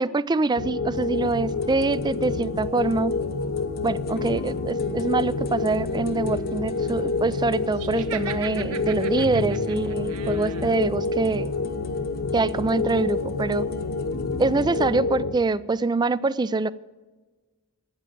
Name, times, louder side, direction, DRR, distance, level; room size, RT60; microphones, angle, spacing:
voice 1, 0.0-3.1 3.8-11.5 12.3-13.7 14.4-16.7, right 3 dB, 20° right, 18 dB, 0.3 m, -24 dB
sound 1, 0.6-15.3, left 3 dB, 70° left, 0.7 m, -28 dB
sound 2, 0.9-14.9, left 2 dB, 45° left, 1.0 m, -37 dB
Laughter, 7.7-10.8, right 8 dB, 75° right, 1.0 m, -39 dB
14.0 x 9.0 x 7.6 m, 1.3 s
head